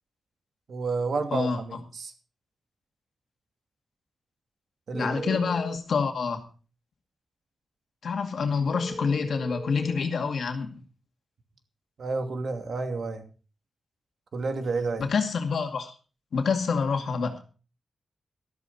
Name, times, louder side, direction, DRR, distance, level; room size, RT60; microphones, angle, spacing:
voice 1, 0.7-2.1 4.9-5.4 12.0-13.2 14.3-15.1, right 3 dB, 55° right, 7 dB, 2.5 m, -30 dB
voice 2, 4.9-6.4 8.0-10.7 15.0-15.9 16.3-17.4, left 5 dB, 60° left, 5 dB, 2.2 m, -27 dB
sound 1, 4.9-5.8 8.7-10.1, left 1 dB, 5° left, 1.0 m, -39 dB
13.5 x 13.0 x 4.2 m, 0.35 s
wide cardioid pair, 165°, 0 cm